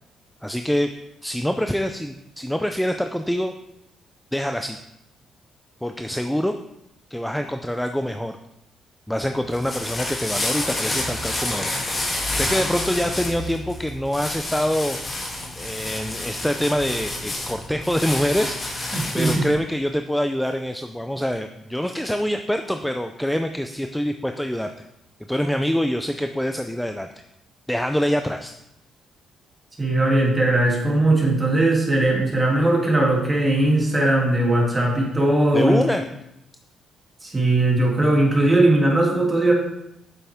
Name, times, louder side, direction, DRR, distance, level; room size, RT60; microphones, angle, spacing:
voice 1, 0.4-0.9 1.2-3.5 4.3-4.8 5.8-6.5 7.1-8.4 9.1-11.7 12.3-15.0 15.6-24.9 25.3-27.1 27.7-28.5 35.5-36.0, equal, 5° left, 6 dB, 0.4 m, -25 dB
sound 1, 9.3-19.6, left 1 dB, 30° left, 2.5 m, -29 dB
voice 2, 18.9-19.4 29.8-35.8 37.2-39.5, right 2 dB, 20° right, -2 dB, 2.7 m, -19 dB
9.2 x 6.7 x 3.5 m, 0.84 s
cardioid pair, 90°, 0 cm